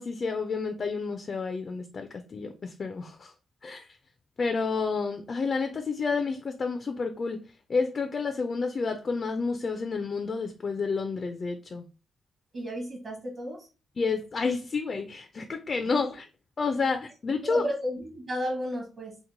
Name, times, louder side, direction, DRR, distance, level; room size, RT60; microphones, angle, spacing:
voice 1, 0.0-3.3 3.6-3.9 4.4-7.4 7.7-11.9 14.0-16.2 16.6-17.7, left 4 dB, 35° left, 0.3 m, -30 dB
voice 2, 12.5-13.7 15.9-16.0 17.4-19.2, equal, 40° right, 0.9 m, -33 dB
2.9 x 2.1 x 3.8 m
wide cardioid pair, 145°, 0 cm